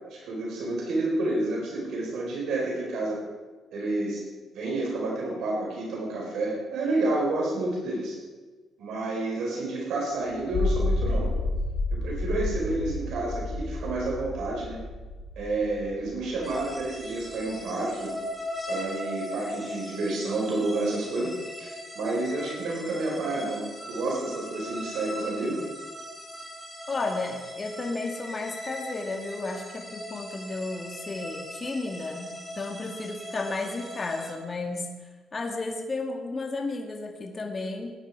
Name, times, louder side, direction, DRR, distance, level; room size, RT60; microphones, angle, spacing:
voice 1, 0.0-3.2 3.7-4.2 4.5-8.2 8.8-11.3 11.9-14.8 15.4-18.1 18.7-21.3 21.6-25.6, right 2 dB, 75° right, -2 dB, 4.7 m, -29 dB
sound 1, 10.4-16.9, left 2 dB, 85° left, 3.0 m, -30 dB
sound 2, 16.4-34.3, left 1 dB, 5° left, 4.3 m, -39 dB
voice 2, 26.9-34.9 35.3-37.9, left 3 dB, 30° left, 2 dB, 2.2 m, -33 dB
19.0 x 10.5 x 4.9 m, 1.3 s
cardioid pair, 90°, 0 cm